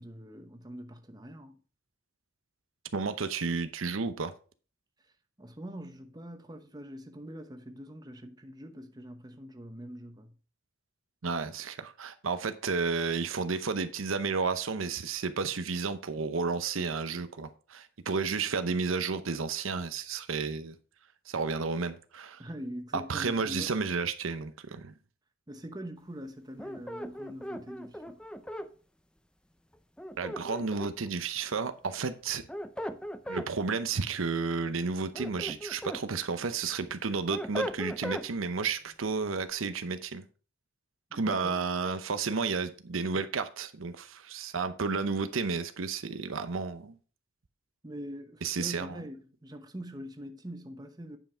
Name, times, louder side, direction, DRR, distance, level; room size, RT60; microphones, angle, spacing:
voice 1, 0.0-1.5 5.4-10.3 22.4-23.7 25.5-28.2 41.1-41.7 47.8-51.2, equal, 20° right, 0.9 m, -43 dB
voice 2, 2.9-4.3 11.2-20.8 21.3-22.4 22.9-24.9 30.2-32.4 33.3-40.3 41.1-47.0 48.4-49.0, right 4 dB, 85° right, 0.8 m, -32 dB
sound 1, 26.6-28.7 30.0-31.1 32.3-33.5 34.9-36.0 36.5-38.3, equal, 5° left, 0.4 m, -38 dB
9.4 x 5.7 x 4.4 m
head